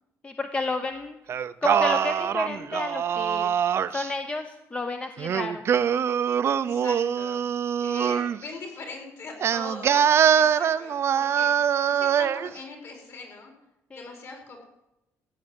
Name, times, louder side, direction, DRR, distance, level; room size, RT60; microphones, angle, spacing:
voice 1, 0.2-1.2 1.6-3.5 3.9-5.7 13.9-14.2, left 3 dB, 20° left, 7 dB, 0.8 m, -31 dB
Singing, 1.3-4.1 5.2-8.4 9.4-12.5, right 8 dB, 45° right, 0.6 m, -23 dB
voice 2, 6.6-7.4 7.8-10.0 10.3-13.5 13.9-14.7, left 3 dB, 50° left, 2 dB, 4.7 m, -41 dB
15.0 x 7.5 x 9.8 m, 0.89 s
cardioid pair, 140°, 6 cm